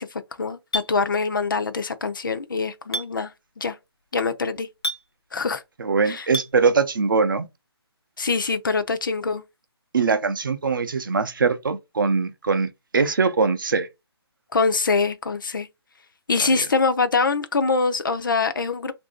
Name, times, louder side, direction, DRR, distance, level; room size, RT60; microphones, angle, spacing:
voice 1, 0.0-3.3 3.6-3.8 4.1-4.7 5.3-5.6 6.1-6.3 8.2-9.4 14.5-15.7 16.3-18.9, left 4 dB, 50° left, 0.5 m, -24 dB
Chink clink, 0.7-0.9 2.9-3.1 4.8-5.0 6.3-6.5, equal, 65° left, 0.9 m, -27 dB
voice 2, 5.8-7.5 9.9-13.9 16.4-16.5, right 4 dB, 50° right, 0.5 m, -22 dB
2.8 x 2.6 x 3.6 m
hypercardioid pair, 175°, 14 cm